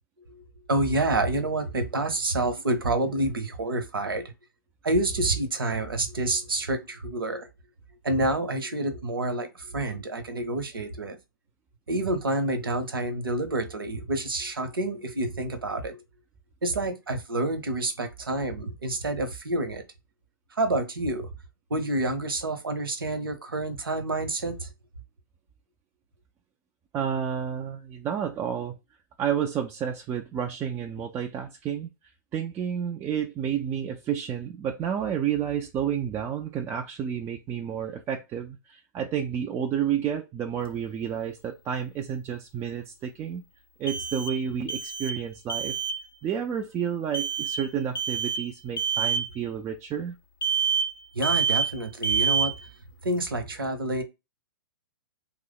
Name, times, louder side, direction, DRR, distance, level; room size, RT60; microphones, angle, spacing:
voice 1, 0.7-4.2 4.8-7.5 8.0-11.2 11.9-16.0 16.6-19.8 20.6-21.3 21.7-24.7 51.1-52.5 53.0-54.0, right 2 dB, 85° right, 0.8 m, -28 dB
voice 2, 26.9-28.8 29.2-31.9 32.3-43.4 43.8-45.8 46.2-50.2, right 8 dB, 20° right, 0.3 m, -30 dB
sound 1, 40.6-40.7 43.9-44.4 44.7-45.2 45.5-46.0 47.1-47.6 47.9-48.4 48.8-49.3 50.4-51.0 51.2-51.8 52.0-52.6, right 6 dB, 80° left, 0.6 m, -27 dB
2.9 x 2.0 x 3.9 m
hypercardioid pair, 115°, 12 cm